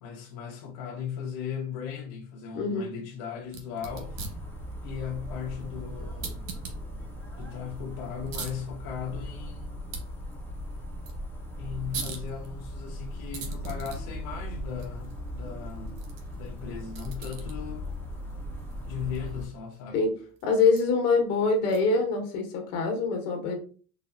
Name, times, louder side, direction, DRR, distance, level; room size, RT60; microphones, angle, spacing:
voice 1, 0.0-4.3 4.8-6.6 7.4-9.8 11.6-16.0 16.3-17.9 18.8-20.0, left 7 dB, 65° left, 0.8 m, -37 dB
voice 2, 2.5-2.9 19.9-20.1 20.4-23.6, left 4 dB, 80° left, 1.1 m, -24 dB
sound 1, 3.4-22.1, right 5 dB, 75° right, 1.0 m, -45 dB
sound 2, 3.8-19.5, equal, 5° left, 0.7 m, -38 dB
4.1 x 2.0 x 2.4 m
supercardioid pair, 105°, 44 cm